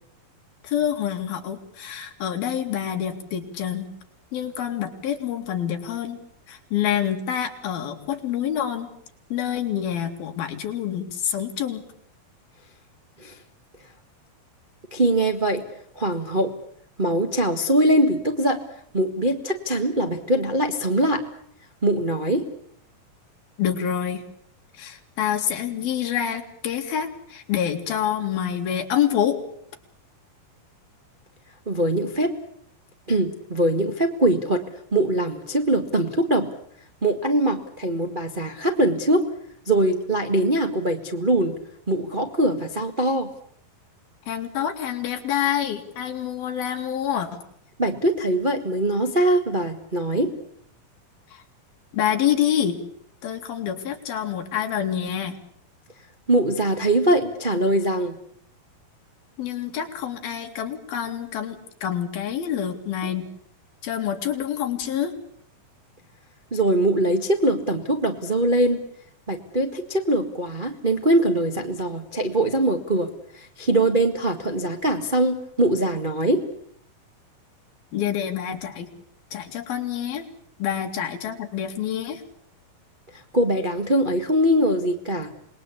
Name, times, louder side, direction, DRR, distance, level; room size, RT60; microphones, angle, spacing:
voice 1, 0.6-3.9 4.3-6.2 6.5-8.9 9.3-11.8 23.6-24.2 24.7-29.4 44.3-47.3 51.3-51.4 51.9-52.8 53.2-55.3 59.4-63.3 63.8-65.1 77.9-78.9 79.3-80.3 80.6-82.2, left 9 dB, 75° left, 5 dB, 4.3 m, -27 dB
voice 2, 14.9-15.6 15.9-16.5 17.0-18.6 18.9-21.2 21.8-22.4 31.7-32.3 33.1-34.6 34.9-36.5 37.0-39.2 39.6-41.6 41.9-43.3 47.8-50.3 56.3-58.2 63.0-63.1 66.5-68.8 69.3-76.4 83.3-85.4, right 1 dB, 40° right, 4 dB, 0.6 m, -22 dB
27.0 x 20.5 x 8.4 m, 0.65 s
omnidirectional pair, 4.3 m